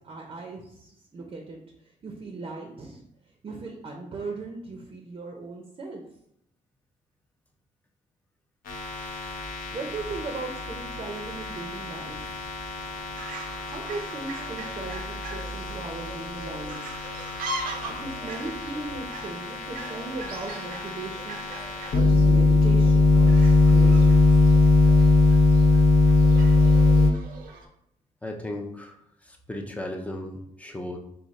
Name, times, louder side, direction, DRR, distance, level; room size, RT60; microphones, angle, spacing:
voice 1, 0.0-1.6 2.0-3.0 3.4-6.0 9.7-12.2 13.7-16.8 17.9-21.6 21.9-24.1, right 3 dB, 40° right, 1 dB, 0.6 m, -38 dB
sound 1, 8.7-27.1, left 3 dB, 90° left, 0.8 m, -22 dB
voice 2, 9.0-9.3 28.2-28.9 29.2-31.0, left 1 dB, 10° left, 2 dB, 0.6 m, -36 dB
Fowl, 12.8-27.7, right 2 dB, 85° right, 0.7 m, -41 dB
4.9 x 2.4 x 4.0 m, 0.75 s
wide cardioid pair, 140°, 14 cm